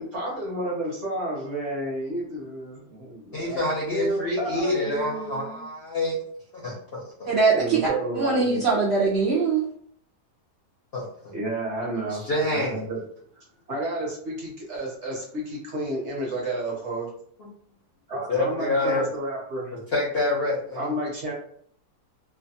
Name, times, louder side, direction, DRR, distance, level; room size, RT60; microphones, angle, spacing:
voice 1, 0.0-5.6 7.5-8.6 11.3-13.0 13.4-17.1 18.1-19.7 20.7-21.3, right 1 dB, 55° right, -3 dB, 0.9 m, -31 dB
voice 2, 3.3-6.2 6.5-7.0 10.9-11.1 12.1-12.8 18.3-19.1 19.9-20.9, left 2 dB, 60° left, -4 dB, 0.6 m, -27 dB
voice 3, 7.3-7.9 8.2-9.7, right 4 dB, 80° right, -4 dB, 0.5 m, -22 dB
2.8 x 2.2 x 2.6 m, 0.62 s
omnidirectional pair, 1.8 m